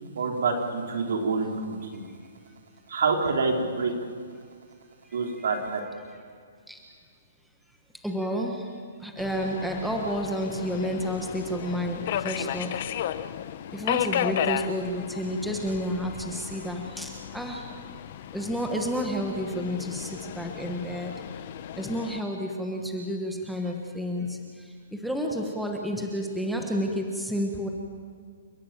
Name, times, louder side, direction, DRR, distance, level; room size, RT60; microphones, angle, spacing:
voice 1, 0.2-2.1 2.9-3.9 5.1-5.8, right 4 dB, 60° right, 2 dB, 3.8 m, -27 dB
voice 2, 8.0-8.6 9.0-12.8 13.7-17.6 18.3-21.1 21.8-24.4 25.0-27.7, equal, ahead, 1 dB, 1.2 m, -30 dB
Subway metro underground, 9.2-22.2, left 11 dB, 35° left, 0.7 m, -34 dB
29.5 x 11.0 x 9.0 m, 2.1 s
hypercardioid pair, 180°, 0 cm